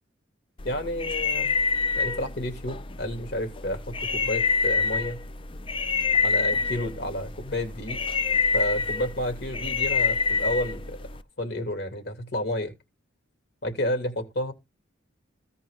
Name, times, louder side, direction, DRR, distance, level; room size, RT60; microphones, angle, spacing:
voice 1, 0.6-1.5 1.9-5.2 6.2-8.0 8.5-11.1 11.4-12.7 13.6-14.5, left 1 dB, 60° left, 2.3 m, -31 dB
sound 1, 0.6-11.2, left 5 dB, 25° left, 0.4 m, -27 dB
15.5 x 5.3 x 3.5 m
head